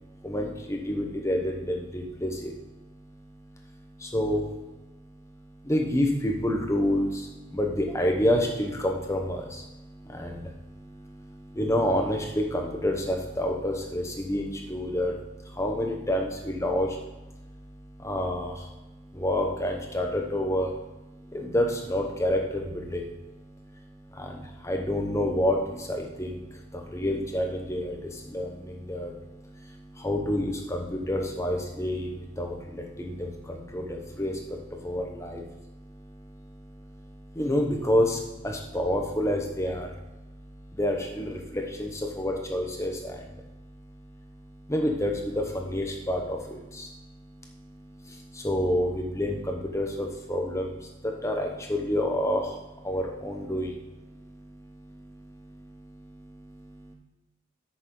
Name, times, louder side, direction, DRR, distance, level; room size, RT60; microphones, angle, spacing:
voice 1, 0.0-56.9, left 1 dB, 15° left, 2 dB, 0.9 m, -30 dB
8.8 x 6.6 x 3.8 m, 1.0 s
head